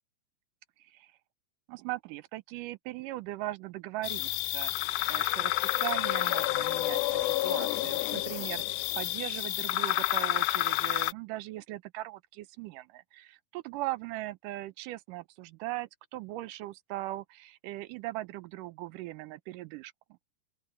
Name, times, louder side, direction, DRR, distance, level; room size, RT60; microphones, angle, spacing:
voice 1, 0.8-1.1 1.7-19.9, right 17 dB, 85° right, 2.2 m, -39 dB
sound 1, 4.0-11.1, left 18 dB, 80° left, 2.0 m, -29 dB
open air
omnidirectional pair, 3.9 m